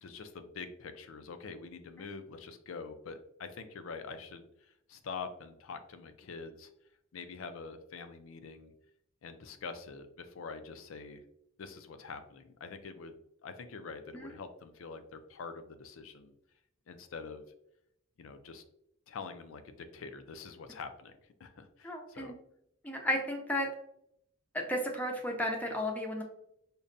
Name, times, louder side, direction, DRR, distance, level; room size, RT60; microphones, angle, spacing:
voice 1, 0.0-6.7 7.1-8.7 9.2-11.2 11.6-16.3 16.9-17.4 18.2-18.6 19.1-22.3, left 4 dB, 75° left, 9 dB, 0.4 m, -45 dB
voice 2, 21.8-22.3 22.8-23.7 24.5-26.2, left 1 dB, 10° left, 1 dB, 0.5 m, -33 dB
5.2 x 2.2 x 2.5 m, 0.76 s
head